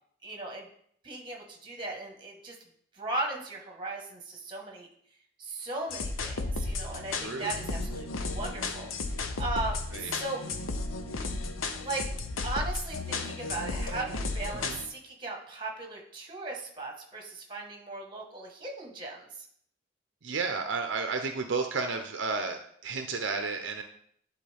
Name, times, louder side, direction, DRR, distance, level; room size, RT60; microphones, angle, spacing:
voice 1, 0.2-0.7 1.0-2.6 2.9-4.9 5.4-10.4 11.8-12.1 12.4-19.4, right 2 dB, 25° right, 1 dB, 1.4 m, -37 dB
sound 1, 5.9-14.9, left 3 dB, 90° left, 0.7 m, -34 dB
voice 2, 7.2-7.6 9.9-10.1 14.6-14.8 20.2-23.8, right 4 dB, 65° right, 5 dB, 0.6 m, -32 dB
10.0 x 4.1 x 3.4 m, 0.64 s
head